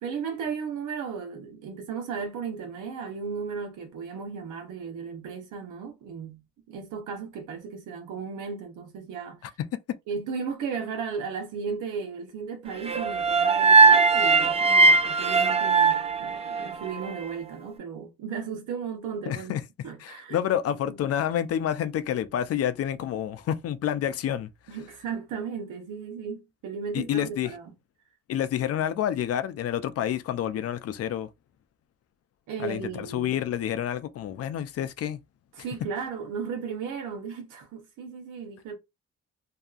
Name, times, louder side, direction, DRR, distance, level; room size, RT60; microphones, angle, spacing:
voice 1, 0.0-6.4 6.7-9.5 10.1-19.5 19.8-20.4 20.7-21.0 24.7-27.7 32.5-33.3 35.5-38.7, right 6 dB, 85° right, 0.9 m, -35 dB
sound 1, 12.9-17.1, right 4 dB, 20° right, 0.4 m, -19 dB
voice 2, 19.3-19.6 20.0-24.5 26.9-27.5 28.3-31.3 32.6-35.2, left 10 dB, 55° left, 0.5 m, -28 dB
2.7 x 2.3 x 2.4 m
cardioid pair, 90°, 30 cm